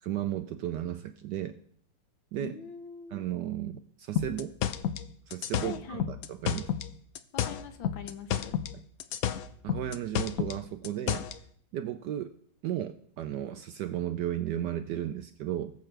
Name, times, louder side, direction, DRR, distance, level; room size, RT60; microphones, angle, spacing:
voice 1, 0.0-1.5 2.3-2.5 3.1-4.5 5.3-6.7 9.6-11.3 11.7-12.3 12.6-15.7, right 12 dB, 75° right, 9 dB, 1.0 m, -34 dB
voice 2, 2.4-3.2 5.6-6.1 7.3-8.6, left 6 dB, 70° left, 9 dB, 1.6 m, -42 dB
sound 1, 4.2-6.9 7.2-8.7 9.0-11.4, left 10 dB, 85° left, 0.7 m, -31 dB
19.5 x 7.5 x 3.3 m, 0.65 s
omnidirectional pair, 2.2 m